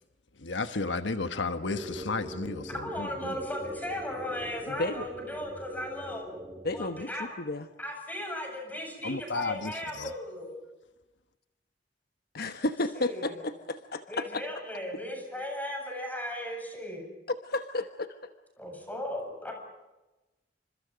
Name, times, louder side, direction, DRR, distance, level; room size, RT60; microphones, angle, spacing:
voice 1, 0.4-3.4 9.0-10.1, left 3 dB, 90° left, 1.3 m, -33 dB
sound 1, 1.6-7.0, right 1 dB, 15° right, 2.1 m, -43 dB
voice 2, 2.8-6.4 6.7-7.3 7.8-10.6 12.9-13.4 14.1-17.1 18.6-19.5, left 1 dB, 10° left, 8.0 m, -37 dB
voice 3, 4.7-5.1 6.6-7.1 7.4-7.7 12.3-14.4 17.4-18.3, left 2 dB, 60° left, 1.2 m, -32 dB
29.0 x 26.0 x 5.2 m
head